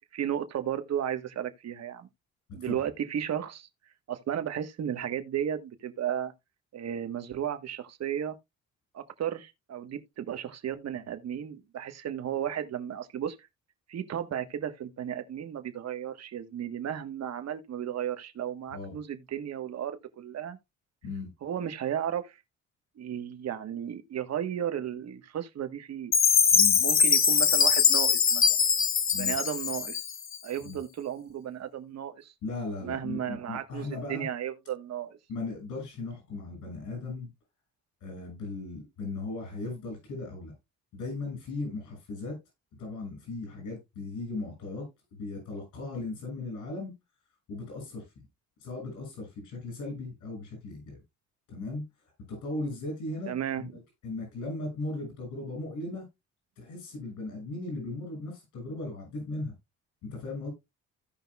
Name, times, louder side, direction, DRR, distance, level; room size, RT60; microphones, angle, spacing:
voice 1, 0.1-2.1 2.5-3.7 4.1-6.3 6.7-8.3 8.9-13.5 13.9-20.6 21.4-22.4 23.0-26.1 26.8-28.6 29.2-30.0 30.4-32.3 32.8-35.2 53.3-53.6, right 9 dB, 60° right, 1.4 m, -34 dB
Chime, 26.1-30.4, left 6 dB, 45° left, 1.2 m, -22 dB
voice 2, 32.4-34.3 35.3-37.3 38.0-40.5 40.9-42.4 42.7-46.9 47.5-48.1 48.6-51.0 51.5-51.9 52.3-56.1 56.6-59.5 60.0-60.5, left 2 dB, 80° left, 6.4 m, -37 dB
16.0 x 5.4 x 2.3 m
cardioid pair, 90°, 30 cm